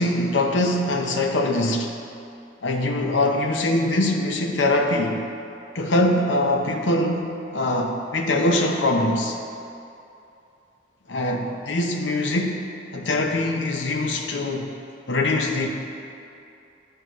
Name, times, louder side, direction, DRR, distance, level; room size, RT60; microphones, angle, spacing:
voice 1, 0.0-2.0 2.6-5.3 5.7-9.4 11.1-14.7 15.1-15.7, left 1 dB, 75° left, 2 dB, 0.8 m, -23 dB
13.0 x 4.9 x 3.1 m, 2.7 s
head